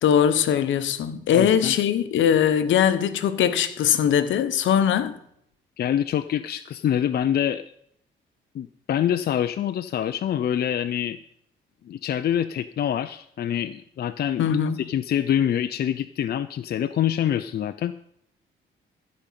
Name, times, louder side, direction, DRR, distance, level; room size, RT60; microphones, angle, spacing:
voice 1, 0.0-5.1 14.4-14.8, left 9 dB, 75° left, 1.1 m, -21 dB
voice 2, 1.3-1.7 5.8-7.6 8.5-11.2 11.8-14.5 14.7-17.9, left 10 dB, 55° left, 0.6 m, -25 dB
14.5 x 5.3 x 7.5 m
cardioid pair, 90°, 20 cm